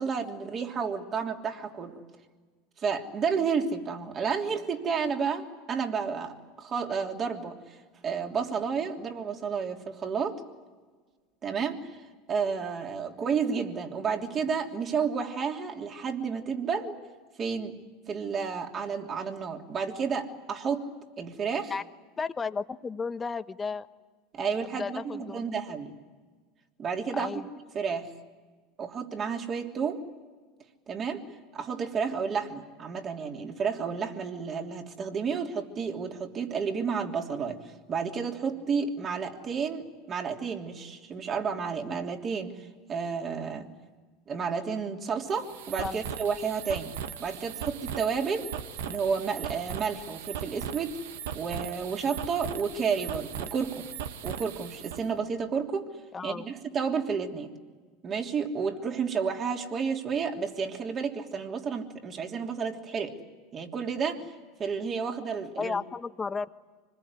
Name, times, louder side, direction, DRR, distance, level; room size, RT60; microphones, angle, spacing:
voice 1, 0.0-2.0 2.8-7.8 8.0-10.4 11.4-12.0 12.3-16.9 17.4-17.7 18.1-20.9 21.2-21.7 24.3-25.9 26.8-27.4 27.7-28.1 28.8-30.0 30.9-31.2 31.5-37.6 37.9-43.7 44.3-46.9 47.2-48.5 48.9-51.0 51.3-53.9 54.2-55.9 56.2-57.5 58.0-63.1 63.5-64.2 64.6-65.8, right 6 dB, 35° right, 3 dB, 3.1 m, -31 dB
voice 2, 22.2-23.9 24.8-25.4 27.1-27.5 45.8-46.0 56.1-56.4 65.6-66.5, left 4 dB, 20° left, 11 dB, 1.1 m, -33 dB
sound 1, 45.3-55.0, right 8 dB, 80° right, 1.3 m, -38 dB
26.0 x 20.5 x 9.8 m, 1.4 s
hypercardioid pair, 95°, 0 cm